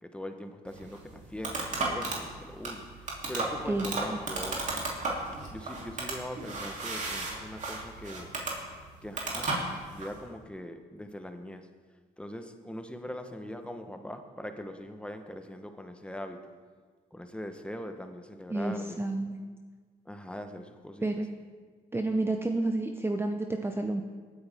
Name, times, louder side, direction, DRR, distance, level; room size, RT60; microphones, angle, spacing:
voice 1, 0.0-4.8 5.5-8.3 9.0-9.5 9.9-11.7 12.2-16.4 17.1-19.0 20.0-21.1, left 1 dB, 5° left, 6 dB, 1.2 m, -41 dB
sound 1, 0.7-10.2, right 3 dB, 45° right, 3.1 m, -35 dB
voice 2, 18.5-19.4 21.0-21.3 21.9-24.0, right 2 dB, 15° right, 4 dB, 0.8 m, -30 dB
18.0 x 9.7 x 3.6 m, 1.5 s
cardioid pair, 80°, 17 cm